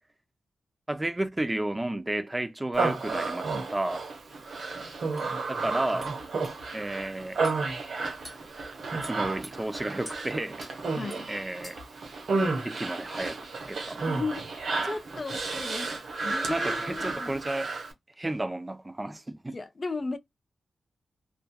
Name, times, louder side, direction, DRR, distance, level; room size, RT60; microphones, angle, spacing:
voice 1, 0.9-4.0 5.5-6.1 6.7-7.4 8.9-10.6 11.3-11.8 12.6-13.4 13.7-14.0 16.5-17.7 18.2-19.6, right 1 dB, 25° right, 0.5 m, -32 dB
Human voice, 2.7-17.9, right 3 dB, 75° right, 0.8 m, -32 dB
sound 1, 4.6-4.7 5.2-5.3 6.0-6.1 6.4-6.6 7.4-7.6 8.2-8.4 9.0-9.5 10.0-10.2 10.6-10.7 11.1-11.2 11.6-11.9, equal, 5° left, 1.0 m, -46 dB
voice 2, 10.9-11.3 14.1-15.9 16.2-17.4 19.5-20.2, left 3 dB, 45° left, 0.5 m, -35 dB
2.5 x 2.3 x 2.2 m
supercardioid pair, 40°, 0 cm